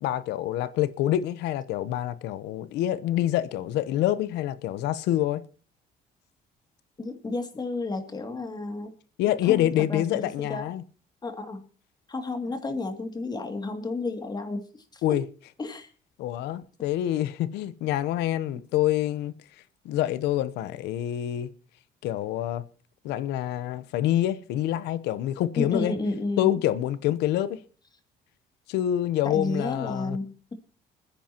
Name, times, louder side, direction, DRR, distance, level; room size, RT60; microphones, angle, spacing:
voice 1, 0.0-5.4 9.2-10.8 15.0-15.2 16.2-19.3 19.8-21.5 22.0-22.6 23.0-25.9 26.4-27.6 28.7-30.2, left 13 dB, 85° left, 0.9 m, -26 dB
voice 2, 7.0-8.9 9.4-10.7 11.2-11.7 12.1-14.6 14.9-15.2 15.6-15.9 25.6-26.5 29.2-30.5, left 2 dB, 25° left, 2.5 m, -32 dB
28.5 x 10.0 x 3.0 m
cardioid pair, 110°, 17 cm